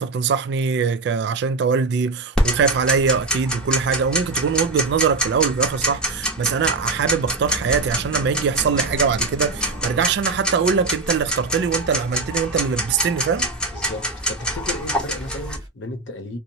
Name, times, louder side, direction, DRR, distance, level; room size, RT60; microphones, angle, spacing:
voice 1, 0.0-13.5, right 6 dB, 60° right, 0.3 m, -22 dB
Tick-tock, 2.4-15.6, equal, 5° left, 0.7 m, -26 dB
sound 1, 7.5-10.0 12.0-15.7, equal, 20° right, 0.9 m, -41 dB
voice 2, 13.7-16.4, left 2 dB, 75° left, 0.7 m, -33 dB
2.8 x 2.0 x 2.6 m
head